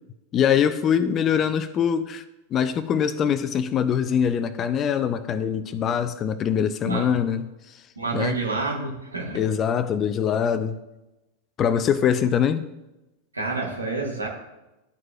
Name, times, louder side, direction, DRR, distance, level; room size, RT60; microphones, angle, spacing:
voice 1, 0.3-2.2 2.5-7.4 8.1-8.4 9.3-10.8 11.6-12.6, left 8 dB, 30° left, 13 dB, 0.4 m, -23 dB
voice 2, 7.9-9.4 13.3-14.3, right 3 dB, 80° right, -1 dB, 1.6 m, -28 dB
12.0 x 4.6 x 2.4 m, 0.98 s
figure-of-eight pair, 90°, 0 cm